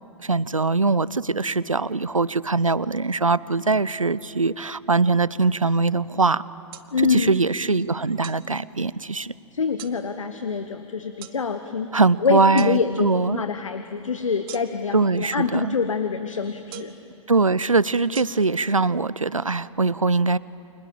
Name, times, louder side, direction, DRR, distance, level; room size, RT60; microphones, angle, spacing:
voice 1, 0.2-6.4 7.1-9.3 11.9-13.4 14.9-15.8 17.3-20.4, right 3 dB, 90° right, 20 dB, 0.6 m, -22 dB
sound 1, 6.7-6.9 8.2-8.4 9.8-10.0 11.2-11.4 12.6-12.7 14.5-14.9 16.7-17.0 18.1-18.2, right 16 dB, 45° right, 1.1 m, -40 dB
voice 2, 6.9-7.3 9.5-16.9, left 5 dB, 75° left, 9 dB, 1.2 m, -25 dB
29.0 x 26.0 x 7.6 m, 2.9 s
figure-of-eight pair, 105°, 17 cm